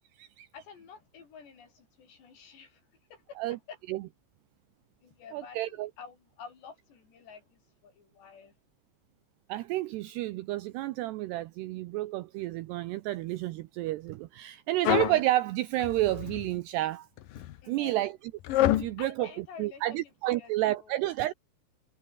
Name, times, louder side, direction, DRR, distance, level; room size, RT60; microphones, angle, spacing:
voice 1, 0.5-3.8 5.0-8.6 17.6-18.1 18.7-20.0 20.3-21.0, left 6 dB, 60° left, 7.0 m, -50 dB
voice 2, 5.3-5.9 9.5-17.1 17.7-18.1 18.6-19.3 19.6-21.3, right 16 dB, 85° right, 2.4 m, -30 dB
sound 1, 14.8-15.2 15.8-16.5 17.2-17.5 18.4-18.9, left 14 dB, 80° left, 2.0 m, -27 dB
omnidirectional pair, 5.6 m